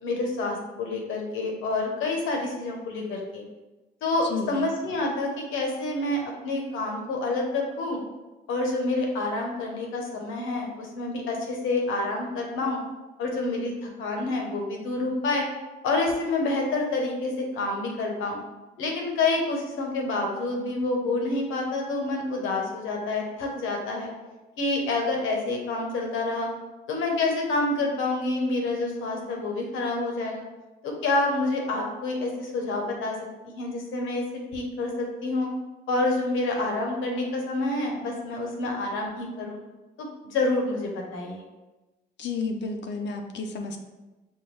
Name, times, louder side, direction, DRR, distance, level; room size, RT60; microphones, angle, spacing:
voice 1, 0.0-3.4 4.0-8.0 8.5-12.8 13.2-15.4 15.8-18.4 18.8-24.1 24.6-26.5 26.9-30.4 30.8-33.1 33.5-34.2 34.5-35.5 35.9-39.6 40.0-41.4, left 2 dB, 85° left, 1 dB, 0.9 m, -28 dB
voice 2, 4.2-4.7 42.2-43.8, left 4 dB, 65° left, 4 dB, 0.5 m, -32 dB
5.4 x 2.2 x 3.2 m, 1.1 s
cardioid pair, 90°, 20 cm